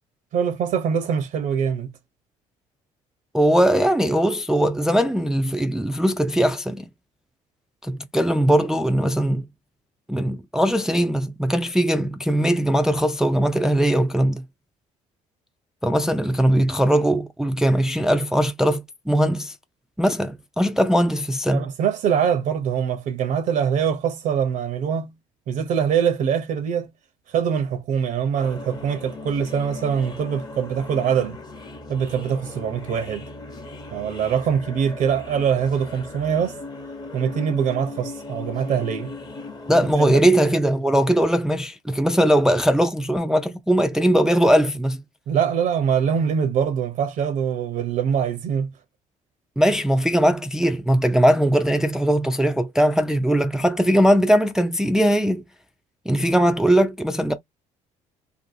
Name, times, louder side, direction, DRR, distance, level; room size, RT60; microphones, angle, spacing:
voice 1, 0.3-1.9 21.5-25.1 25.5-26.9 27.3-31.4 31.9-33.2 33.9-36.6 37.1-39.1 40.0-40.2 45.3-48.7, right 7 dB, 65° right, 0.6 m, -23 dB
voice 2, 3.3-6.9 7.8-9.4 10.1-14.4 15.8-19.5 20.0-21.7 39.7-45.0 49.6-55.4 56.1-57.3, equal, 5° right, 0.3 m, -20 dB
sound 1, 28.4-39.9, left 3 dB, 30° left, 0.8 m, -38 dB
2.6 x 2.6 x 2.6 m
cardioid pair, 90°, 14 cm